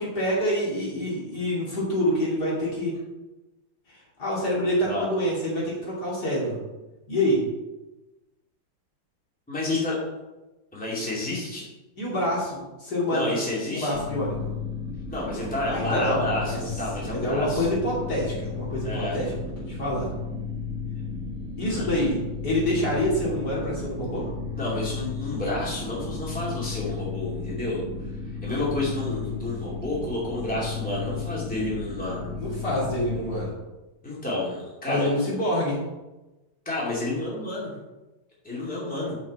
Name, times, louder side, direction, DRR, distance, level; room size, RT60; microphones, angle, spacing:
voice 1, 0.0-2.9 3.9-6.6 7.1-7.4 12.0-13.3 13.7-14.4 15.3-16.6 17.1-20.1 21.6-22.2 22.4-24.3 32.4-33.5 34.9-35.8, equal, 50° left, -6 dB, 3.2 m, -26 dB
voice 2, 9.5-10.0 10.7-11.6 13.1-14.0 15.1-17.7 18.8-19.2 21.6-21.9 24.5-27.8 28.4-32.3 34.0-35.2 36.7-37.7 38.4-39.2, left 2 dB, 5° left, -6 dB, 2.5 m, -30 dB
sound 1, 13.9-33.4, left 4 dB, 15° right, 0.4 m, -34 dB
8.3 x 7.3 x 4.2 m, 1.1 s
omnidirectional pair, 2.2 m